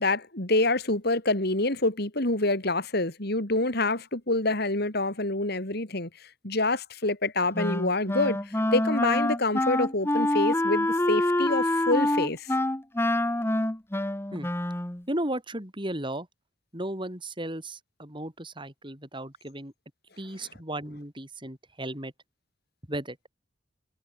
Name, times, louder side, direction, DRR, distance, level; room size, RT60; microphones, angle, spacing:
voice 1, 0.0-12.6, left 2 dB, 55° left, 3.9 m, -27 dB
Wind instrument woodwind instrument, 7.5-15.0, left 1 dB, 10° left, 1.1 m, -26 dB
voice 2, 15.1-16.3 16.7-19.7 20.2-22.1 22.9-23.2, right 1 dB, 25° right, 7.5 m, -35 dB
head